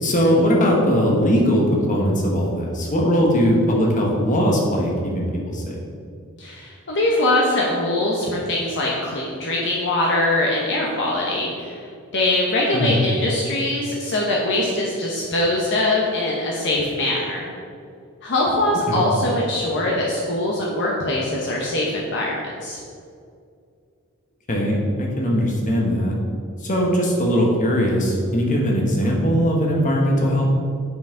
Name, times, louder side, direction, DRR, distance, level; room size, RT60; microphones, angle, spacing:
voice 1, 0.0-5.8 12.7-13.0 18.9-19.0 24.5-26.2 26.6-30.4, equal, 35° left, -1 dB, 1.3 m, -20 dB
voice 2, 6.4-11.9 12.1-17.4 18.2-22.8, left 1 dB, 55° left, -3 dB, 0.9 m, -22 dB
8.2 x 5.6 x 3.8 m, 2.3 s
head